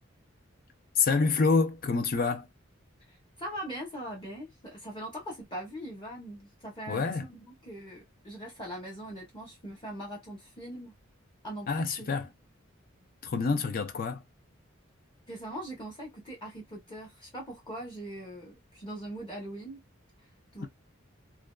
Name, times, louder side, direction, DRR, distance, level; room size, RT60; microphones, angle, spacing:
voice 1, 1.0-2.5 6.9-7.2 11.7-12.3 13.2-14.2 20.6-20.7, left 4 dB, 45° left, 0.5 m, -27 dB
voice 2, 3.1-10.9 11.4-12.3 15.3-19.8 20.5-20.7, right 1 dB, 25° left, 0.9 m, -41 dB
2.5 x 2.2 x 2.3 m
head